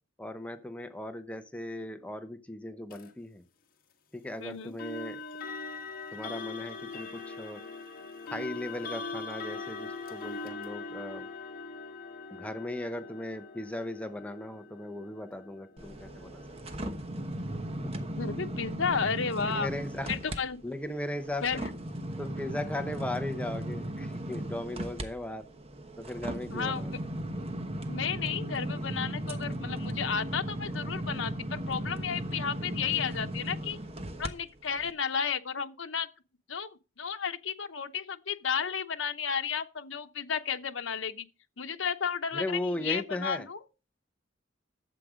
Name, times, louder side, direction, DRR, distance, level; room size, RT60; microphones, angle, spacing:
voice 1, 0.2-3.4 4.1-5.2 6.1-7.6 8.3-11.3 12.3-16.4 16.8-16.9 19.5-20.1 20.6-21.6 22.2-25.4 26.0-26.9 42.3-43.5, left 1 dB, 5° left, 0.9 m, -37 dB
sound 1, 2.9-3.1 4.8-17.6, left 3 dB, 50° left, 1.6 m, -42 dB
voice 2, 4.4-4.7 18.2-19.7 20.1-20.6 21.4-21.7 26.5-26.8 27.9-33.8 34.2-36.1 36.5-41.3 41.6-43.6, left 6 dB, 90° left, 0.9 m, -33 dB
sound 2, 15.8-20.4 20.8-34.3 34.8-34.9, right 1 dB, 30° right, 1.1 m, -36 dB
11.5 x 7.7 x 5.0 m
head